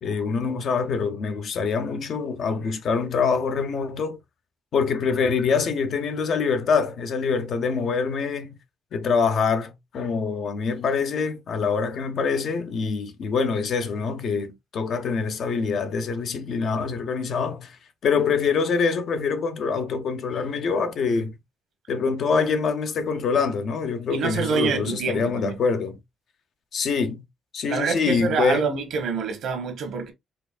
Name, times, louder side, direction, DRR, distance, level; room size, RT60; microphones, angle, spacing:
voice 1, 0.0-4.2 4.7-8.6 8.9-21.3 21.9-26.0 26.7-27.2 27.5-28.7, left 5 dB, 65° left, 0.8 m, -25 dB
voice 2, 24.1-25.6 27.7-30.1, right 5 dB, 75° right, 1.2 m, -26 dB
4.5 x 2.5 x 2.4 m
cardioid pair, 90°, 0 cm